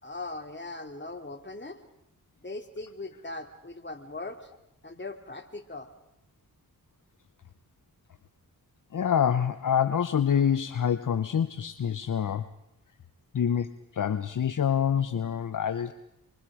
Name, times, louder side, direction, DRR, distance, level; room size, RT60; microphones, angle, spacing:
voice 1, 0.0-1.8 2.4-4.5 4.8-5.9, left 2 dB, 30° left, 4 dB, 3.0 m, -39 dB
voice 2, 8.9-12.5 13.3-15.9, left 8 dB, 60° left, 12 dB, 0.9 m, -26 dB
26.5 x 23.5 x 5.0 m, 0.85 s
cardioid pair, 45°, 36 cm